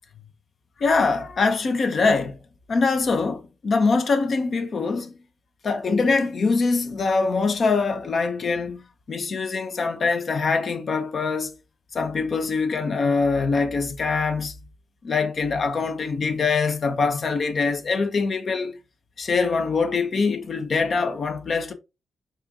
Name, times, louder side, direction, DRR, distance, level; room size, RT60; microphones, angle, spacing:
voice 1, 0.8-2.4 2.7-5.1 5.6-8.8 9.1-11.5 11.9-14.5 15.0-18.8 19.2-21.7, left 4 dB, 60° left, 0.8 m, -23 dB
4.4 x 2.5 x 3.5 m
supercardioid pair, 50°, 0 cm